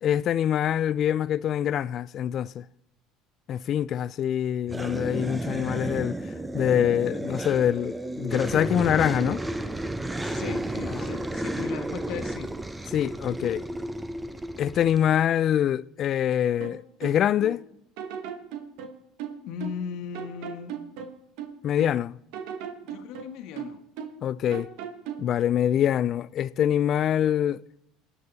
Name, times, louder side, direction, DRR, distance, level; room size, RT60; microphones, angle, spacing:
voice 1, 0.0-2.6 3.5-6.2 6.5-9.4 10.9-11.0 12.9-13.6 14.6-17.6 21.6-22.2 24.2-24.7 25.2-27.6, left 10 dB, 50° left, 0.4 m, -25 dB
sound 1, 4.7-15.0, right 1 dB, 10° right, 0.8 m, -32 dB
voice 2, 10.2-12.5 19.4-20.7 22.9-23.8, left 8 dB, 65° left, 1.4 m, -37 dB
sound 2, 16.6-17.6 18.0-19.9 20.1-22.0 22.3-24.2 24.5-25.3, right 7 dB, 75° right, 1.3 m, -38 dB
23.0 x 8.9 x 4.1 m
hypercardioid pair, 80°, 0 cm